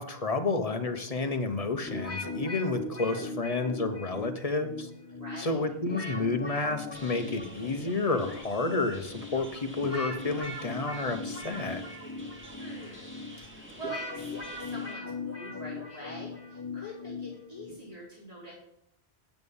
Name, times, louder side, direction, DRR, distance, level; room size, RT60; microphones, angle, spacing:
voice 1, 0.0-4.9 5.4-11.8, left 3 dB, 35° left, 7 dB, 1.0 m, -30 dB
sound 1, 1.9-17.8, left 2 dB, 15° left, 2.0 m, -39 dB
voice 2, 5.1-5.6 12.6-18.5, equal, 35° right, -6 dB, 4.4 m, -45 dB
sound 2, 6.9-14.9, equal, 10° right, 2.3 m, -49 dB
9.2 x 8.1 x 5.4 m, 0.76 s
omnidirectional pair, 1.1 m